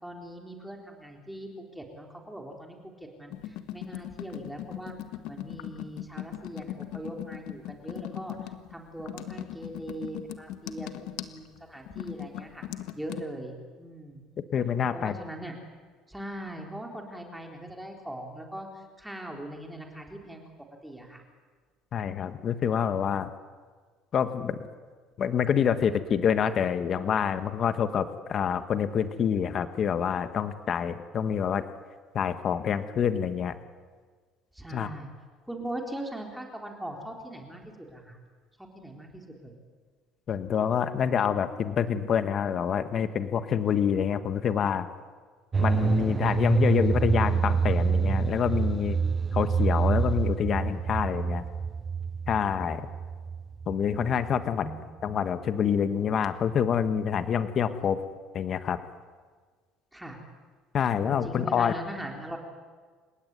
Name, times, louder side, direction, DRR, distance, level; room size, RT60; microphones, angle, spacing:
voice 1, 0.0-4.9 5.3-12.6 12.9-14.2 14.9-15.6 16.1-20.4 20.8-21.2 34.5-35.1 35.4-38.2 38.6-39.5 54.4-55.0 59.9-60.2 61.0-62.4, right 1 dB, 5° right, 1 dB, 3.8 m, -41 dB
sound 1, 3.3-13.2, left 13 dB, 75° left, 1.5 m, -39 dB
voice 2, 14.5-15.1 21.9-23.3 24.1-24.6 25.2-31.6 32.1-33.5 34.7-34.9 40.3-44.9 45.6-49.0 49.3-51.4 52.3-52.9 53.7-54.7 55.0-58.0 58.3-58.8 60.7-61.7, left 8 dB, 35° left, 10 dB, 1.4 m, -27 dB
sound 2, 45.5-55.4 55.7-55.8, right 5 dB, 20° right, 0.7 m, -27 dB
29.0 x 17.0 x 9.6 m, 1.5 s
cardioid pair, 150°, 0 cm